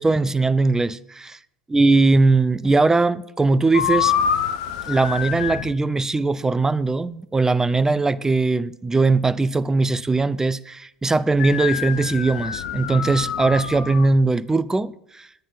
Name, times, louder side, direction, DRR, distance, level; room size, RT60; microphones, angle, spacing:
voice 1, 0.0-1.4 1.7-4.1 4.9-15.3, right 3 dB, 10° right, 0.6 m, -20 dB
sound 1, 3.7-5.7 11.4-14.1, left 9 dB, 65° left, 0.8 m, -26 dB
10.5 x 9.0 x 7.2 m
figure-of-eight pair, 70°, 4 cm